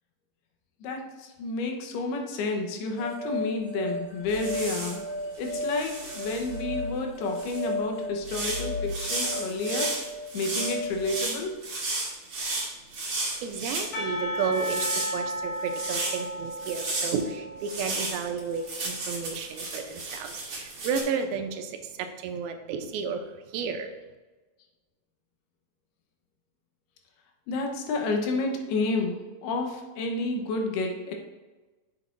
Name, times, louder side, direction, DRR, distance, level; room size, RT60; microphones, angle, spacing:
voice 1, 0.8-5.0 5.4-9.9 10.3-11.6 27.5-31.1, left 3 dB, 85° left, 3 dB, 3.0 m, -30 dB
sound 1, 3.0-11.2, left 1 dB, 30° left, 1.5 m, -34 dB
sound 2, 4.3-5.0 5.4-6.6 7.3-7.6 8.2-13.9 14.4-16.2 16.6-17.2 17.6-21.0, right 2 dB, 45° right, 1.9 m, -33 dB
voice 2, 13.4-23.9, right 6 dB, 80° right, 5 dB, 2.4 m, -32 dB
Percussion / Church bell, 13.9-19.0, equal, 70° left, 4.1 m, -35 dB
8.3 x 7.0 x 2.5 m, 1.2 s
omnidirectional pair, 4.5 m